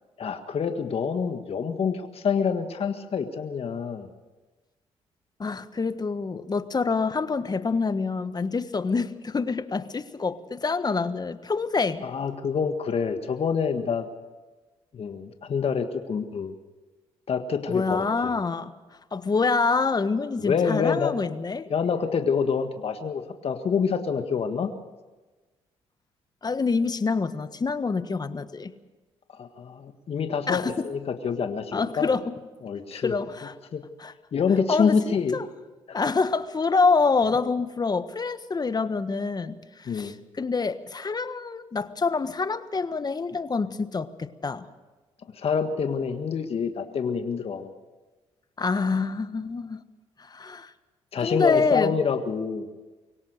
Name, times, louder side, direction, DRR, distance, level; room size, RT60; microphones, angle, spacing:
voice 1, 0.2-4.1 12.0-14.1 14.9-16.5 17.3-18.3 20.4-21.1 21.7-24.7 29.3-32.1 32.6-33.2 33.7-33.8 34.3-35.4 35.9-36.0 39.9-40.1 45.3-47.7 51.1-52.7, left 6 dB, 55° left, 7 dB, 1.6 m, -27 dB
voice 2, 5.4-12.0 17.7-18.7 19.1-21.7 26.4-28.7 30.5-30.9 31.7-32.2 32.9-33.5 34.0-34.1 34.7-35.5 35.9-44.7 48.6-49.8 50.2-50.7 51.2-52.0, left 4 dB, 35° left, 12 dB, 1.4 m, -26 dB
24.0 x 17.5 x 6.7 m, 1.2 s
supercardioid pair, 60°, 12 cm